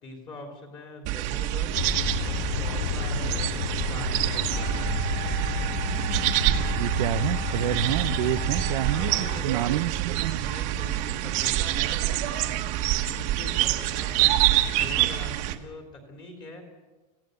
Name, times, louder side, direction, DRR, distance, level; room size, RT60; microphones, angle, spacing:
voice 1, 0.0-1.8 2.2-3.6 3.9-4.8 8.9-9.9 10.4-12.7 13.2-14.4 14.7-16.6, left 2 dB, 20° left, 3 dB, 3.6 m, -42 dB
sound 1, 1.0-15.5, right 14 dB, 35° right, 1.3 m, -26 dB
Aircraft, 1.7-10.1, left 11 dB, 55° left, 0.6 m, -33 dB
Wind instrument woodwind instrument, 4.5-9.4, left 14 dB, 75° left, 1.5 m, -42 dB
voice 2, 6.8-10.4, right 16 dB, 60° right, 9 dB, 0.6 m, -28 dB
26.5 x 16.0 x 6.8 m, 1.2 s
supercardioid pair, 170°, 21 cm